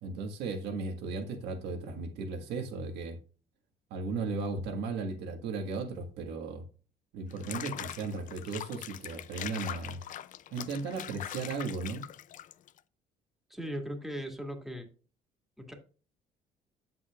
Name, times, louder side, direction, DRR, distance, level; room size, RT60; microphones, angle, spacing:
voice 1, 0.0-3.2 3.9-6.6 7.1-10.0 10.5-12.0, right 4 dB, 85° right, 1.6 m, -36 dB
Water / Bathtub (filling or washing), 7.3-12.8, left 11 dB, 50° left, 0.4 m, -42 dB
voice 2, 13.5-14.9 15.6-15.7, equal, ahead, 1.8 m, -38 dB
8.2 x 7.6 x 2.4 m
cardioid pair, 110°, 17 cm